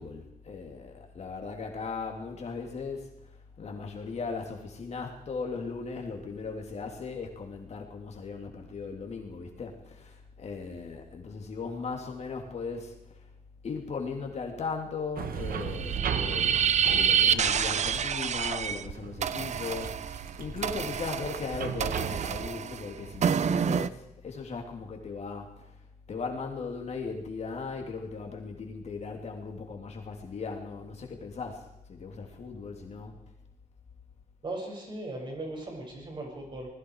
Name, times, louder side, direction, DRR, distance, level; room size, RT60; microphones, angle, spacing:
voice 1, 0.0-3.1 3.6-13.2 13.6-19.9 20.4-25.7 26.1-33.2, left 4 dB, 50° left, 2 dB, 3.4 m, -38 dB
sound 1, 15.2-22.5, right 7 dB, 85° right, 1.6 m, -37 dB
sound 2, 15.6-18.8 19.2-23.9, right 7 dB, 50° right, 0.8 m, -28 dB
voice 2, 34.4-36.7, right 2 dB, 35° right, 0 dB, 7.2 m, -38 dB
27.0 x 20.5 x 5.0 m, 0.85 s
wide cardioid pair, 175°, 15 cm